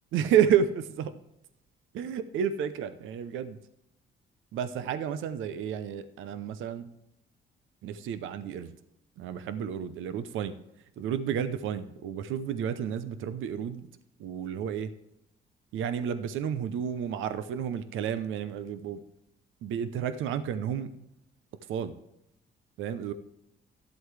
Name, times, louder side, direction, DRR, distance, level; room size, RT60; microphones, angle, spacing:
voice 1, 0.1-1.1 1.9-3.6 4.5-6.9 7.8-8.7 9.2-10.5 11.0-13.9 14.2-14.9 15.7-19.0 19.6-20.9 21.7-21.9 22.8-23.1, right 8 dB, 85° right, 12 dB, 0.7 m, -30 dB
12.0 x 8.0 x 3.3 m, 0.81 s
cardioid pair, 90°, 20 cm